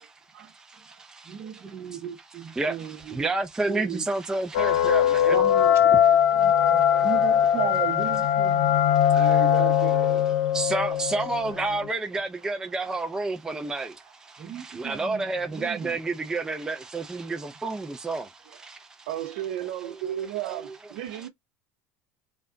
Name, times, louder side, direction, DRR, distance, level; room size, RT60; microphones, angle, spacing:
voice 1, 0.5-1.2 2.5-5.4 6.9-7.1 8.6-9.5 9.8-10.2 10.5-19.1 20.5-20.8, right 3 dB, 10° right, 0.4 m, -31 dB
voice 2, 1.3-3.3 3.6-4.0 5.3-8.8 14.4-16.0, right 7 dB, 35° right, 0.8 m, -35 dB
sound 1, 4.5-11.9, left 9 dB, 75° left, 0.5 m, -21 dB
voice 3, 9.1-10.4 14.5-14.7 15.1-15.2 19.1-21.3, right 12 dB, 85° right, 0.8 m, -34 dB
3.3 x 2.3 x 3.8 m
supercardioid pair, 135°, 7 cm